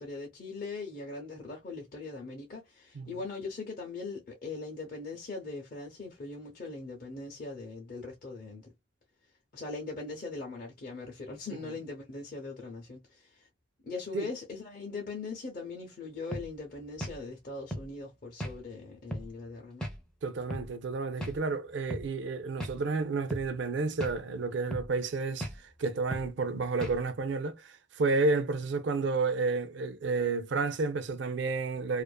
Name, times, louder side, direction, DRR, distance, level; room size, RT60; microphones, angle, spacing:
voice 1, 0.0-8.7 9.5-13.5 13.8-19.8, left 3 dB, 45° left, 0.6 m, -40 dB
sound 1, 16.3-16.5 17.0-17.2 17.7-17.9 18.4-18.6 19.1-19.3 19.8-20.0 20.5-20.7 21.2-21.4 21.9-22.1 22.6-22.8 23.3-23.5 24.0-24.2 24.7-24.9 25.4-25.6 26.1-26.3 26.8-27.0, equal, 5° left, 0.4 m, -36 dB
voice 2, 20.2-25.5 25.8-32.0, right 3 dB, 60° right, 0.4 m, -31 dB
2.5 x 2.4 x 2.2 m
head